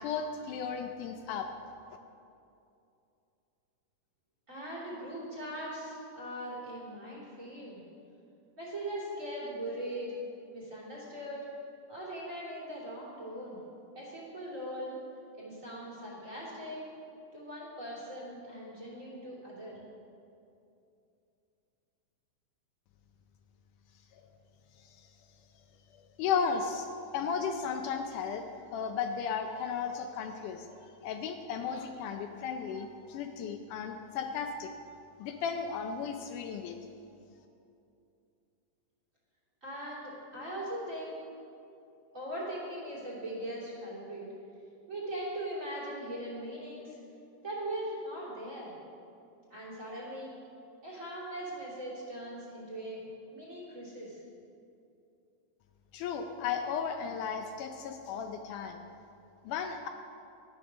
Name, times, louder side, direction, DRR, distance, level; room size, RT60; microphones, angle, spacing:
voice 1, 0.0-1.5 24.1-24.3 24.9-25.0 26.2-34.7 35.2-36.8 55.9-58.8 59.5-59.9, left 6 dB, 80° left, 5 dB, 2.1 m, -35 dB
voice 2, 4.5-7.8 8.6-10.2 10.5-11.4 11.9-13.6 13.9-14.9 15.4-16.8 17.3-19.8 39.6-41.1 42.1-44.2 44.9-47.0 47.4-48.8 49.5-50.3 50.8-53.0 53.3-54.2, right 1 dB, 25° right, -6 dB, 3.0 m, -40 dB
12.5 x 9.3 x 6.2 m, 2.6 s
omnidirectional pair, 3.8 m